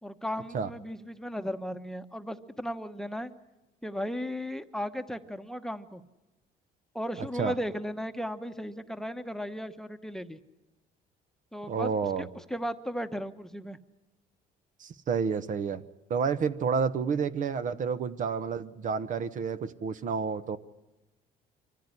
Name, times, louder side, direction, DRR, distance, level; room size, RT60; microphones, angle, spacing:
voice 1, 0.0-3.3 3.8-6.0 6.9-10.4 11.5-13.8, equal, 5° left, 7 dB, 1.1 m, -36 dB
voice 2, 7.2-7.5 11.7-12.3 14.8-15.8 16.1-20.6, right 6 dB, 50° right, 12 dB, 1.0 m, -30 dB
25.0 x 15.0 x 9.6 m, 1.0 s
cardioid pair, 110°, 17 cm